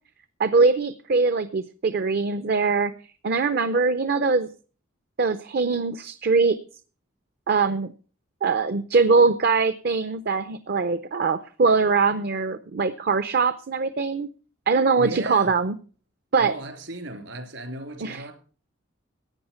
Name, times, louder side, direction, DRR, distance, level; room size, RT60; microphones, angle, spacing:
voice 1, 0.4-2.9 3.2-4.5 5.2-6.6 7.5-7.9 8.4-14.3 14.7-15.8 16.3-16.5 18.0-18.3, right 4 dB, 55° right, 0.6 m, -22 dB
voice 2, 14.9-15.5 16.4-18.3, right 1 dB, 70° right, 3.3 m, -35 dB
14.5 x 8.8 x 5.7 m
head